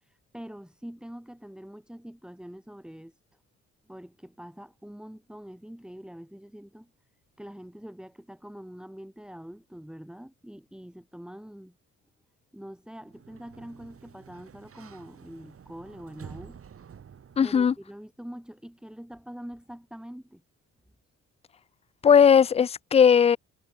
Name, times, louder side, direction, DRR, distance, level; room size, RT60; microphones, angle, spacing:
voice 1, 0.1-3.1 3.9-6.9 7.4-11.8 12.5-16.6 17.4-20.4, equal, 5° right, 4.0 m, -44 dB
Sliding door, 13.0-17.9, right 7 dB, 45° right, 2.9 m, -49 dB
voice 2, 17.4-17.7 22.0-23.4, left 7 dB, 20° left, 0.3 m, -18 dB
cardioid pair, 90°, 30 cm